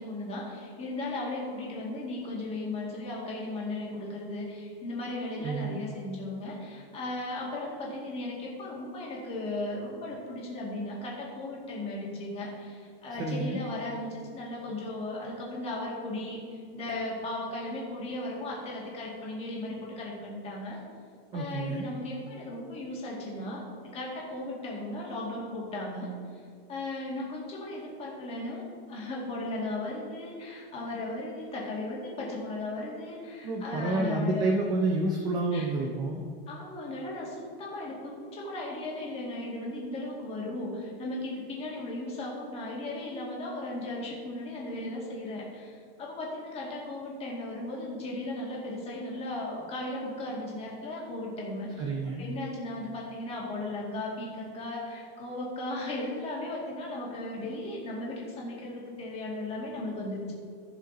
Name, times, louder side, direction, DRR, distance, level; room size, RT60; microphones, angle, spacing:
voice 1, 0.0-20.8 21.3-23.6 23.9-26.1 26.7-28.6 28.9-34.4 35.5-35.6 36.5-51.9 52.2-60.3, left 2 dB, 20° left, -3 dB, 2.1 m, -36 dB
voice 2, 5.4-5.8 13.2-13.6 21.3-21.9 33.4-36.2 51.8-52.2, right 2 dB, 15° right, 2 dB, 0.3 m, -29 dB
15.0 x 5.4 x 3.9 m, 2.3 s
supercardioid pair, 165°, 30 cm